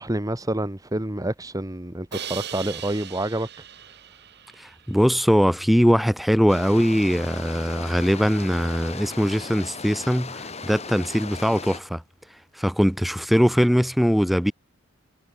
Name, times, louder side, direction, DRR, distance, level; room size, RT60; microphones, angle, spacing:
voice 1, 0.0-3.5, right 1 dB, 15° right, 1.2 m, -28 dB
Crash cymbal, 2.1-5.2, right 9 dB, 55° right, 3.3 m, -39 dB
voice 2, 4.6-12.0 12.6-14.5, equal, ahead, 2.5 m, -21 dB
sound 1, 6.5-11.8, left 4 dB, 30° left, 5.6 m, -37 dB
head